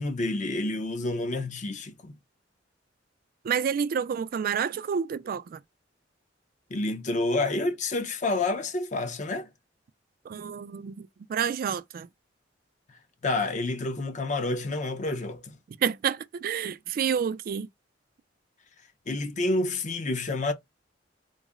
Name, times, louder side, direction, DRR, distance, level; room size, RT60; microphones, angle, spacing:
voice 1, 0.0-2.1 6.7-9.5 13.2-15.6 19.1-20.5, left 2 dB, 40° left, 0.6 m, -29 dB
voice 2, 3.4-5.6 10.2-12.1 15.7-17.7, right 7 dB, 50° right, 0.3 m, -29 dB
3.9 x 2.0 x 3.5 m
head